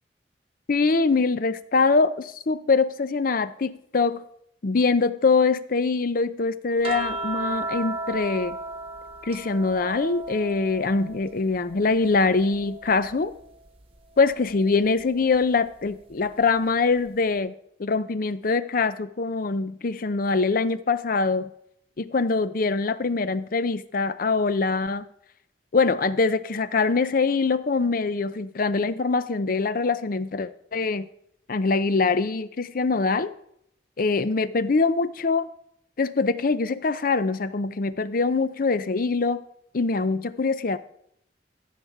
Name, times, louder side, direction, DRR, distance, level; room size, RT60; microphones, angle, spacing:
voice 1, 0.7-4.2 4.6-8.6 9.2-13.3 14.2-17.5 17.8-21.5 22.0-25.0 25.7-31.1 31.5-33.3 34.0-35.5 36.0-39.4 39.7-40.8, left 4 dB, 50° left, 14 dB, 0.6 m, -23 dB
sound 1, 6.8-11.3 11.7-13.3 14.8-15.0, right 2 dB, 30° right, 1.0 m, -34 dB
14.5 x 6.6 x 4.8 m, 0.71 s
head